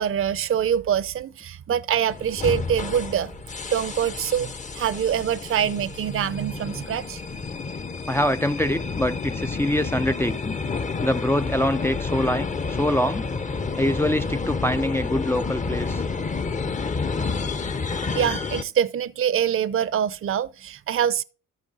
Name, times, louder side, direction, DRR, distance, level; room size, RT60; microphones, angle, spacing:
voice 1, 0.0-3.3 3.7-7.2 18.1-21.2, right 9 dB, 45° right, 0.7 m, -24 dB
sound 1, 2.1-18.6, left 4 dB, 25° left, 0.8 m, -30 dB
voice 2, 8.1-10.6 11.0-13.3 13.8-16.0, left 1 dB, 10° left, 0.4 m, -24 dB
13.5 x 5.2 x 3.9 m
cardioid pair, 90°, 30 cm